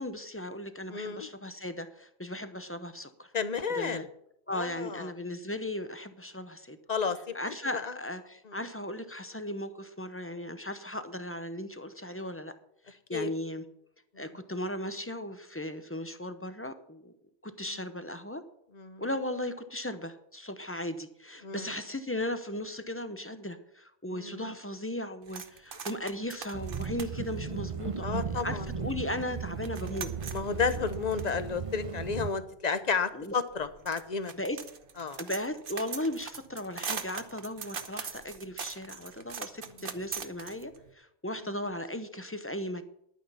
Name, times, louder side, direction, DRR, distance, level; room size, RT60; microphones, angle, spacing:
voice 1, 0.0-3.3 3.7-4.0 4.5-6.8 7.3-12.5 12.9-13.6 14.2-17.1 17.4-18.4 19.0-28.1 28.3-30.1 33.1-33.3 34.3-34.6 35.2-42.8, left 1 dB, 15° left, 10 dB, 0.7 m, -37 dB
voice 2, 0.9-1.3 3.3-4.1 4.5-5.1 6.9-7.9 8.4-8.6 13.1-13.4 14.1-14.3 17.6-17.8 18.7-19.0 21.4-21.7 24.1-24.5 28.0-28.7 30.3-34.3 35.0-35.2 41.4-41.5, left 5 dB, 45° left, 11 dB, 0.9 m, -32 dB
sound 1, 25.3-28.4 28.9-29.0 29.2-40.9, right 6 dB, 60° right, 1.0 m, -42 dB
sound 2, 26.5-32.3, right 6 dB, 35° right, 0.7 m, -36 dB
11.5 x 9.2 x 5.6 m, 0.74 s
omnidirectional pair, 1.1 m